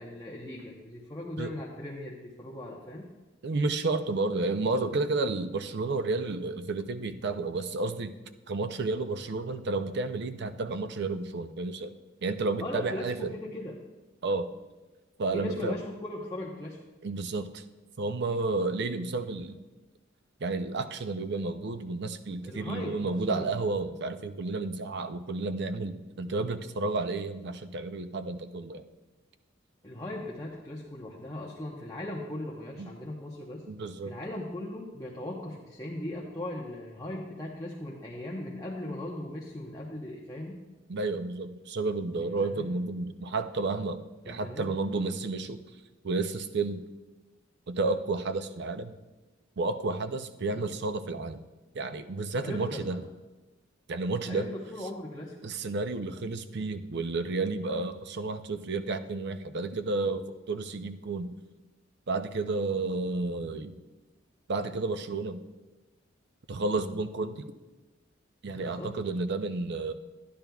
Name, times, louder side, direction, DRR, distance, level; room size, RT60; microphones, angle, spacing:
voice 1, 0.0-3.1 12.6-13.7 15.3-16.8 22.4-23.5 26.2-26.4 29.8-33.6 34.1-40.6 42.1-42.7 44.2-44.7 50.4-50.7 52.4-52.8 54.2-55.4 68.4-68.9, left 1 dB, 20° left, -4 dB, 0.8 m, -38 dB
voice 2, 3.4-8.1 8.5-11.9 12.2-13.3 14.2-14.5 15.2-15.8 17.0-17.6 18.0-19.6 20.4-28.8 32.8-32.9 33.7-34.2 40.9-45.6 46.0-46.8 47.7-48.9 49.6-51.4 51.7-53.0 53.9-54.5 55.4-61.3 62.1-63.8 64.5-65.4 66.5-67.5 68.4-69.9, right 3 dB, 60° right, 10 dB, 0.5 m, -31 dB
12.5 x 10.5 x 2.3 m, 1.1 s
head